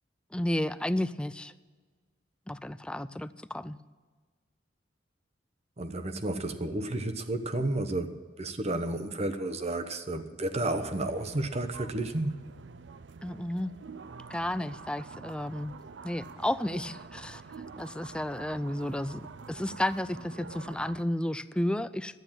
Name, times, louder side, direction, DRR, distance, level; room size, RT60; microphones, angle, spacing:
voice 1, 0.3-1.5 2.5-3.8 13.2-13.7 14.3-15.7 16.0-17.4 17.8-22.2, left 1 dB, 5° left, 14 dB, 0.4 m, -32 dB
voice 2, 5.8-12.4, right 2 dB, 35° right, 9 dB, 0.9 m, -32 dB
sound 1, 10.7-21.0, right 5 dB, 75° right, 0.6 m, -47 dB
12.0 x 9.1 x 8.9 m, 1.4 s
head